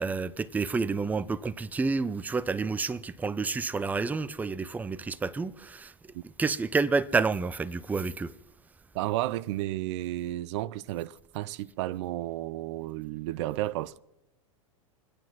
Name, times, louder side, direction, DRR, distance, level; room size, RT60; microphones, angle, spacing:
voice 1, 0.0-5.9 6.4-8.3, right 4 dB, 10° right, 0.5 m, -29 dB
voice 2, 8.9-14.0, right 15 dB, 55° right, 0.5 m, -32 dB
25.5 x 9.4 x 5.9 m
hypercardioid pair, 105°, 17 cm